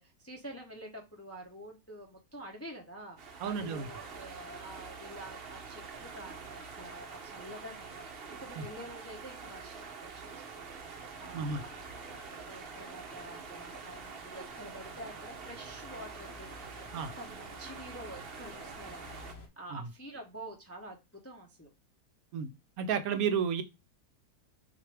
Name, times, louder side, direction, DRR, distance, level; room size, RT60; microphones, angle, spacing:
voice 1, 0.0-11.7 12.5-16.5 16.8-21.7, right 1 dB, 15° left, 0.5 m, -48 dB
sound 1, 3.2-19.3, right 5 dB, 50° right, 0.8 m, -46 dB
voice 2, 3.4-3.9 8.6-8.7 11.3-11.6 16.9-17.1 22.3-22.5 22.8-23.6, right 6 dB, 70° right, 1.0 m, -31 dB
sound 2, 11.3-19.5, left 3 dB, 45° left, 0.8 m, -54 dB
6.0 x 2.7 x 3.3 m
omnidirectional pair, 1.7 m